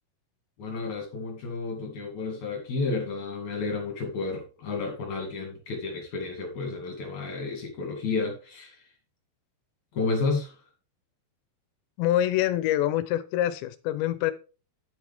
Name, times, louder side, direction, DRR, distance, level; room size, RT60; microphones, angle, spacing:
voice 1, 0.6-8.8 9.9-10.6, left 4 dB, 50° left, 1 dB, 3.0 m, -31 dB
voice 2, 12.0-14.3, left 13 dB, 80° left, 13 dB, 2.8 m, -25 dB
9.7 x 8.4 x 3.4 m, 0.35 s
omnidirectional pair, 5.2 m